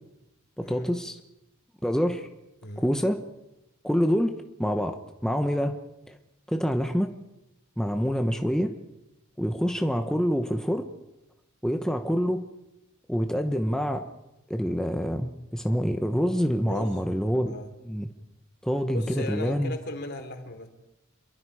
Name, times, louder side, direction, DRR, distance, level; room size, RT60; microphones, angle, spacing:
voice 1, 0.6-1.2 1.8-2.3 2.8-3.2 3.8-4.3 4.6-5.8 6.1-6.2 6.5-7.1 7.8-8.7 9.4-10.8 11.6-12.4 13.1-14.0 14.5-17.5 17.8-18.1 18.6-19.7, equal, 5° left, 5 dB, 1.1 m, -26 dB
voice 2, 18.9-20.7, left 2 dB, 55° left, 6 dB, 3.2 m, -37 dB
27.5 x 23.0 x 4.9 m, 0.91 s
head